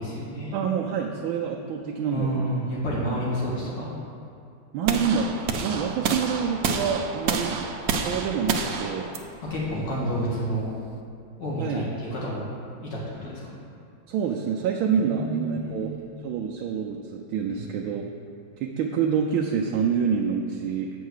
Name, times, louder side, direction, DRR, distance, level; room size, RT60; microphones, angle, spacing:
voice 1, 0.0-0.6 2.1-4.0 9.4-10.7 11.4-12.5 12.8-13.5 14.9-16.0 17.5-17.9, equal, 60° left, -6 dB, 2.2 m, -30 dB
voice 2, 0.5-2.5 3.0-3.2 4.7-7.6 7.9-9.1 11.6-11.9 14.1-16.0 16.2-18.0 18.6-20.9, right 7 dB, 85° right, 0 dB, 1.4 m, -27 dB
sound 1, 4.9-10.9, right 5 dB, 70° right, 0.8 m, -29 dB
7.9 x 4.7 x 6.5 m, 2.5 s
omnidirectional pair, 2.2 m